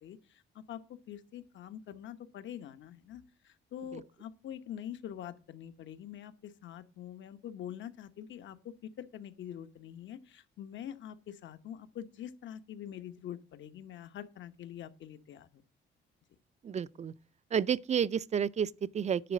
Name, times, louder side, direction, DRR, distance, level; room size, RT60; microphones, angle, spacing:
voice 1, 0.0-15.6, left 10 dB, 70° left, 1.0 m, -45 dB
voice 2, 16.6-17.1 17.5-19.3, right 8 dB, 35° right, 0.4 m, -31 dB
10.0 x 4.0 x 7.4 m
cardioid pair, 90°, 20 cm